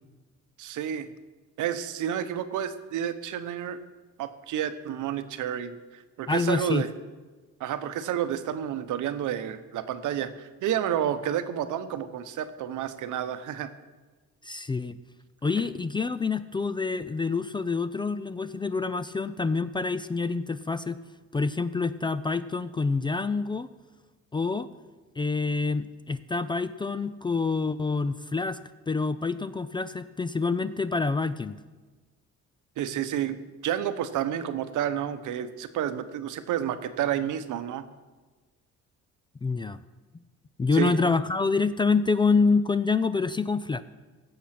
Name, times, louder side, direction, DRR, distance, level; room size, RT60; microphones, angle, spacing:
voice 1, 0.6-1.1 1.6-3.8 4.2-6.9 7.6-13.7 32.8-37.9 40.7-41.0, right 10 dB, 80° right, 11 dB, 0.9 m, -30 dB
voice 2, 6.3-6.8 14.4-15.0 15.4-21.0 21.3-23.7 24.3-24.7 25.2-28.6 28.9-31.6 39.4-39.8 40.6-43.8, left 4 dB, 15° left, 14 dB, 0.3 m, -27 dB
16.0 x 7.0 x 5.9 m, 1.3 s
cardioid pair, 130°, 30 cm